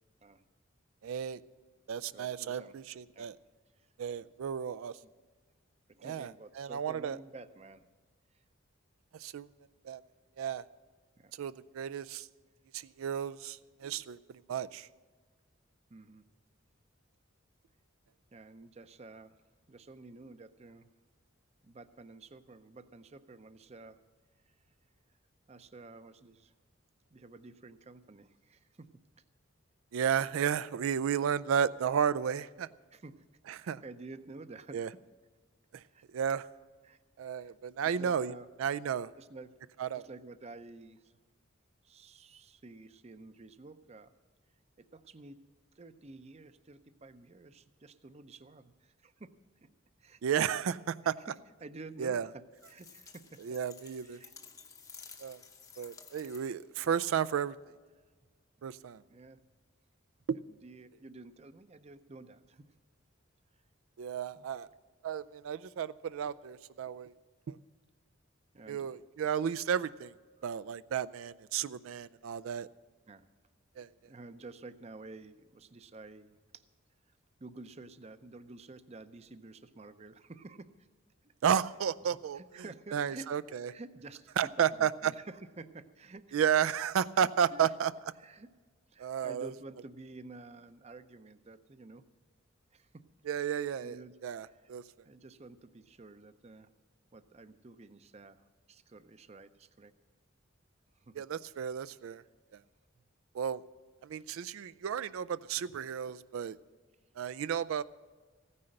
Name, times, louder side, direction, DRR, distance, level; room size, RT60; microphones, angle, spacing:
voice 1, 1.0-1.4 1.9-3.4 4.0-5.0 6.0-7.2 9.1-9.5 9.8-10.0 10.4-10.6 11.4-12.3 12.7-14.2 14.5-14.9 29.9-32.7 33.5-33.8 34.7-34.9 35.7-35.8 36.1-36.5 37.2-38.3 38.6-39.1 39.8-40.0 50.2-51.1 52.0-52.3 53.4-54.2 55.2-55.4 55.8-57.5 58.6-59.0 60.3-60.4 64.0-64.7 65.0-67.1 67.5-67.6 68.7-70.1 70.4-72.7 73.8-73.9 81.4-82.4 82.9-83.7 84.4-85.1 86.3-87.9 89.0-89.5 93.3-94.8 101.2-102.2 103.3-103.6 104.0-106.6 107.2-107.8, right 8 dB, 85° right, 15 dB, 0.4 m, -33 dB
voice 2, 2.1-2.8 3.1-3.3 3.8-3.9 5.0-5.1 5.9-7.9 8.3-8.4 11.2-11.3 15.9-16.2 18.3-19.4 19.7-20.9 21.6-24.0 25.5-26.5 27.1-28.9 30.3-30.4 32.9-33.2 33.6-34.9 35.9-36.0 36.8-37.0 37.4-37.5 37.8-38.5 39.2-39.6 39.9-41.2 41.8-44.1 44.8-45.4 45.8-49.3 49.6-49.7 50.0-50.2 51.0-51.3 51.6-54.3 59.1-59.4 60.6-62.6 64.3-64.5 68.5-69.0 73.1-73.3 74.0-76.6 77.4-80.9 81.2-81.3 82.0-84.5 84.8-86.4 87.5-87.7 88.2-88.5 88.9-92.0 92.7-93.0 93.4-93.5 93.8-94.2 94.4-94.7 95.0-96.7 97.1-99.9 101.0-101.3, right 3 dB, 30° right, 12 dB, 0.5 m, -51 dB
sound 1, 52.5-56.7, left 5 dB, 15° left, 0.7 m, -53 dB
15.5 x 9.7 x 6.5 m, 1.4 s
head